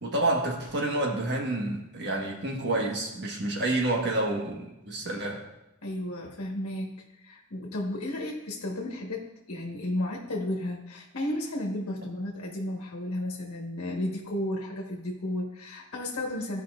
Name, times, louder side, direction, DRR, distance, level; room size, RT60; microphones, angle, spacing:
voice 1, 0.0-5.4, right 2 dB, 50° right, -1 dB, 1.5 m, -29 dB
voice 2, 5.8-16.6, left 1 dB, 70° left, -2 dB, 1.4 m, -33 dB
15.0 x 5.5 x 2.5 m, 0.94 s
head